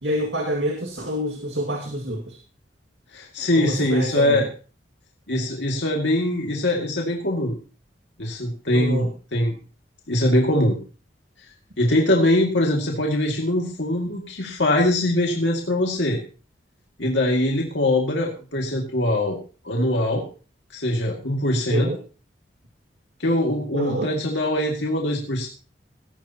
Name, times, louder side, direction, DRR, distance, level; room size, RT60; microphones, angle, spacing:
voice 1, 0.0-2.4 3.5-4.5 8.7-9.1 21.7-22.0 23.7-24.1, equal, 80° right, 1 dB, 2.1 m, -27 dB
voice 2, 3.1-4.5 5.3-7.6 8.2-9.6 10.1-10.8 11.8-16.2 17.0-19.4 19.6-20.2 20.7-21.9 23.2-25.5, left 1 dB, 80° left, -1 dB, 2.3 m, -22 dB
18.5 x 14.0 x 2.9 m, 0.36 s
head